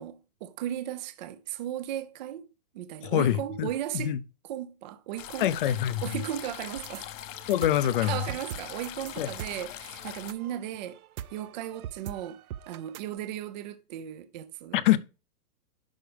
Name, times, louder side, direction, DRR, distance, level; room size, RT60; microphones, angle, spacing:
voice 1, 0.0-2.5 2.7-4.2 4.5-5.7 6.0-7.1 8.0-11.0 11.3-12.4 12.7-14.8, right 11 dB, 30° right, 0.5 m, -36 dB
voice 2, 3.0-3.7 3.9-4.2 5.4-6.2 7.5-8.2 9.2-9.3 14.7-15.0, left 12 dB, 35° left, 0.6 m, -25 dB
sound 1, 5.2-10.3, left 12 dB, 60° left, 0.9 m, -42 dB
sound 2, 6.8-13.2, right 11 dB, 75° right, 0.7 m, -43 dB
11.5 x 5.0 x 3.3 m
hypercardioid pair, 150°, 44 cm